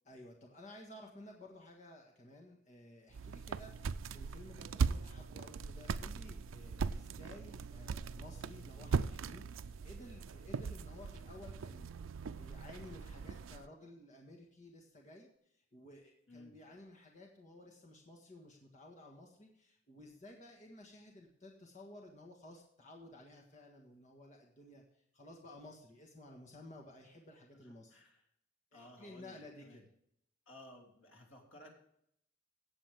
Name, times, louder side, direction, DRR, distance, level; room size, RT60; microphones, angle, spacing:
voice 1, 0.1-11.9 12.2-28.0 28.7-29.9, left 1 dB, 40° left, 0 dB, 1.5 m, -55 dB
sound 1, 3.1-13.6, right 5 dB, 85° right, 0.4 m, -39 dB
voice 2, 27.6-28.2 28.7-29.8 30.4-31.7, left 1 dB, 85° left, 0 dB, 3.3 m, -57 dB
17.0 x 7.4 x 3.5 m, 0.71 s
head